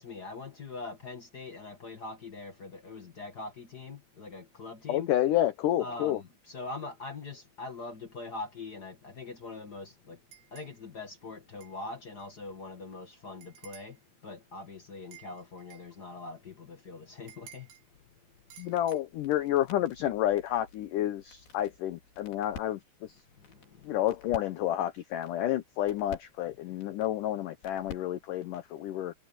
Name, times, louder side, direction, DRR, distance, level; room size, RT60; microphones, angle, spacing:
voice 1, 0.0-5.1 5.8-10.2 10.5-17.7 23.4-24.0, left 3 dB, 50° left, 1.2 m, -43 dB
voice 2, 4.9-6.2 18.6-23.2 23.8-29.1, left 12 dB, 85° left, 1.8 m, -30 dB
sound 1, 10.3-10.8 11.6-11.8 12.2-12.3 13.4-14.0 15.1-15.9 17.3-17.8 18.5-19.0, right 9 dB, 85° right, 5.7 m, -53 dB
sound 2, 17.9-28.8, left 6 dB, 65° left, 5.3 m, -52 dB
omnidirectional pair, 4.9 m